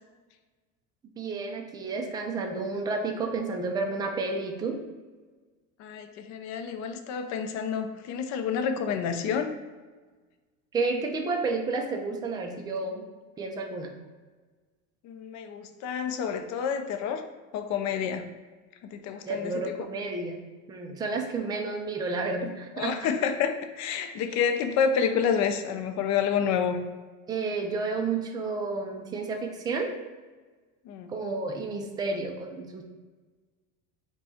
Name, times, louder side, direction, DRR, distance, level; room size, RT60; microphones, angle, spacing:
voice 1, 1.2-4.8 10.7-13.1 13.4-13.9 19.3-22.9 27.3-29.9 31.1-32.8, right 3 dB, 10° right, 2 dB, 0.3 m, -31 dB
voice 2, 5.8-9.5 15.0-17.2 17.5-18.2 18.8-19.5 22.8-26.8 30.9-31.1, left 7 dB, 40° left, 7 dB, 0.5 m, -29 dB
5.3 x 2.3 x 4.2 m, 1.3 s
supercardioid pair, 120°, 42 cm